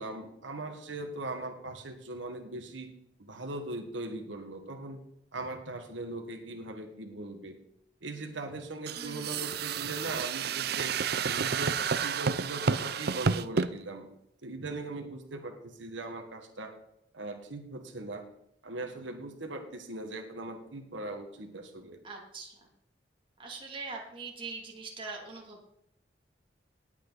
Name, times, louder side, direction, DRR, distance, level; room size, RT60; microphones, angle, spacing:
voice 1, 0.0-2.9 3.2-5.0 5.3-7.6 8.0-11.0 11.3-14.1 14.4-16.7 17.1-18.2 18.6-22.0, right 2 dB, 90° right, 4 dB, 1.7 m, -40 dB
sound 1, 8.9-13.7, right 6 dB, 55° right, 0.5 m, -30 dB
voice 2, 9.0-9.4 22.0-22.6 23.4-25.7, right 4 dB, 30° right, -1 dB, 2.8 m, -42 dB
18.5 x 8.3 x 4.1 m, 0.77 s
head